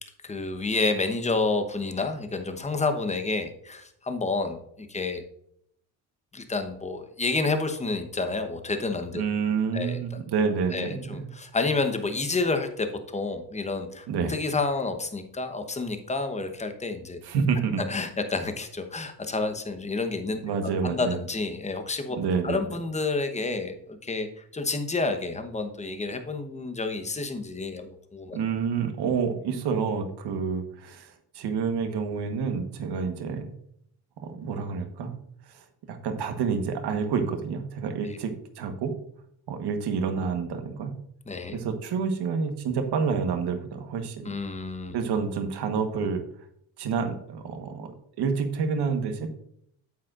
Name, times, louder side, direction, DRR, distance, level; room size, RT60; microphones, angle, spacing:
voice 1, 0.2-5.2 6.3-9.2 9.7-10.0 10.7-17.2 17.9-20.4 20.8-22.2 22.4-24.3 24.5-28.4 41.3-41.6 44.2-45.0, left 3 dB, 15° left, 7 dB, 1.0 m, -29 dB
voice 2, 9.1-11.2 14.1-14.3 17.2-17.8 20.4-21.2 22.2-22.6 28.3-33.5 34.2-35.2 35.5-38.9 39.5-40.9 41.5-44.3 44.9-46.2 46.8-47.9 48.2-49.3, right 5 dB, 70° right, 7 dB, 1.3 m, -28 dB
9.3 x 7.5 x 2.5 m, 0.71 s
cardioid pair, 95°, 41 cm